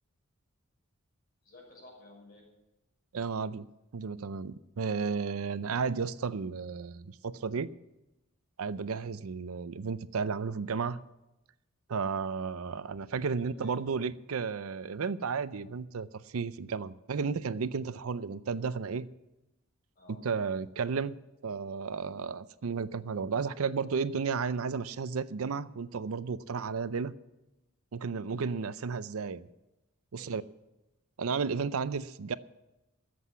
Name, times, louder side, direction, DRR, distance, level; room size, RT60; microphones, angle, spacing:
voice 1, 1.4-2.5 13.4-13.7 20.0-20.2 28.2-28.7 30.2-30.4, left 2 dB, 45° left, -2 dB, 6.1 m, -54 dB
voice 2, 3.1-3.7 3.9-7.7 8.6-11.0 11.9-19.1 20.2-21.1 21.4-27.1 27.9-29.5 30.1-30.4 31.2-32.3, right 5 dB, 85° right, 16 dB, 0.5 m, -33 dB
13.5 x 7.9 x 8.4 m, 0.97 s
head